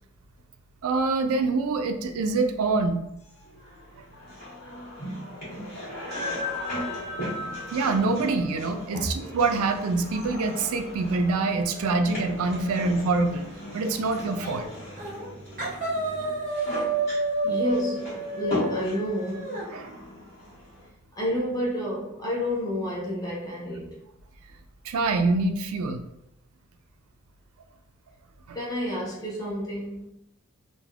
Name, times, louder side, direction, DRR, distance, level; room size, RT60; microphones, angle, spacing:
voice 1, 0.8-3.0 7.7-13.5 13.7-14.7 19.7-19.9 24.8-26.0 28.5-28.6, right 3 dB, 80° right, 7 dB, 0.3 m, -25 dB
sound 1, 3.3-20.9, left 1 dB, 50° left, 1.4 m, -37 dB
sound 2, 14.4-14.7 15.0-15.3 15.6-19.6, right 2 dB, 35° right, 0.6 m, -30 dB
voice 2, 17.4-19.6 21.2-24.0 28.5-30.1, equal, 15° left, -5 dB, 0.6 m, -30 dB
3.2 x 2.2 x 2.3 m, 0.80 s
head